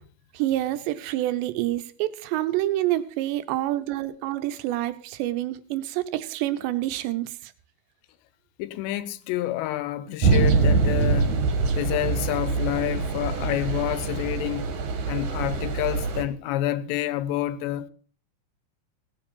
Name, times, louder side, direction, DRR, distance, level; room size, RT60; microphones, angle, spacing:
voice 1, 0.3-7.5, right 14 dB, 80° right, 3.0 m, -27 dB
voice 2, 8.6-14.7 15.0-17.9, left 14 dB, 85° left, 3.0 m, -28 dB
sound 1, 10.2-16.2, right 4 dB, 55° right, 2.4 m, -24 dB
18.0 x 7.5 x 5.4 m
omnidirectional pair, 5.0 m